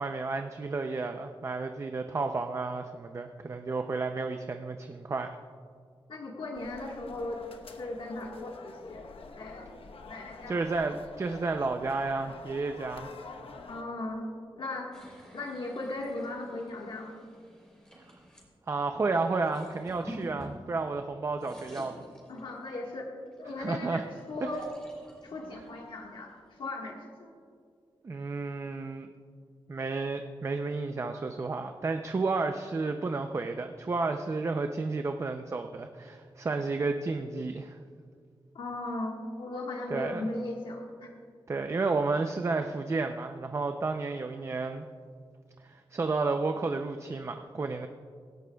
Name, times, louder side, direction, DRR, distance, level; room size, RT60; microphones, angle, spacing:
voice 1, 0.0-5.4 10.5-13.1 18.7-22.0 23.6-24.0 28.0-29.1 29.7-37.8 39.9-40.3 41.5-44.9 45.6-47.9, right 3 dB, 30° right, 6 dB, 0.5 m, -31 dB
voice 2, 6.1-7.4 7.8-9.0 9.4-9.7 10.1-10.6 13.7-17.3 22.3-23.1 23.4-24.0 24.3-24.6 25.2-26.9 27.2-27.3 38.5-41.1, left 2 dB, 60° left, -1 dB, 1.5 m, -37 dB
sound 1, 6.5-13.8, left 4 dB, 80° left, 1.0 m, -47 dB
sound 2, 14.9-18.5 19.3-21.0 21.3-22.8 23.3-26.7, equal, 10° left, 3.4 m, -49 dB
24.5 x 11.0 x 2.3 m, 2.2 s
wide cardioid pair, 170°, 9 cm